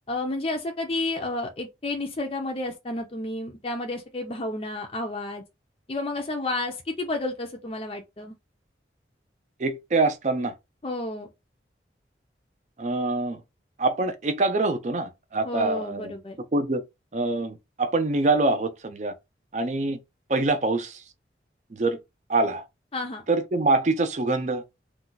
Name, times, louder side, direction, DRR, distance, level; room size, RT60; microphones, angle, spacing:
voice 1, 0.1-5.4 5.9-8.3 10.8-11.3 15.4-16.4 22.9-23.2, left 2 dB, 30° left, 0.5 m, -31 dB
voice 2, 9.6-10.5 12.8-13.4 13.8-16.2 16.5-16.8 17.1-19.1 19.5-20.0 20.3-21.0 21.7-22.0 22.3-22.6 23.3-24.6, right 2 dB, 40° right, 0.5 m, -25 dB
2.4 x 2.2 x 3.9 m
head